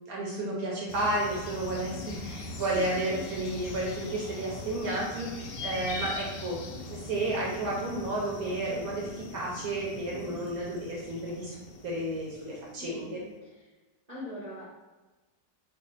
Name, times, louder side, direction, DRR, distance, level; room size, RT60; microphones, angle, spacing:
voice 1, 0.0-6.6 6.9-11.6 11.8-13.2, right 1 dB, 65° right, -4 dB, 1.0 m, -32 dB
sound 1, 0.9-13.0, left 2 dB, 80° left, 1.3 m, -41 dB
voice 2, 2.7-3.2 12.8-13.7 14.1-14.7, left 1 dB, 35° right, -8 dB, 0.6 m, -43 dB
3.3 x 2.4 x 3.9 m, 1.2 s
omnidirectional pair, 1.9 m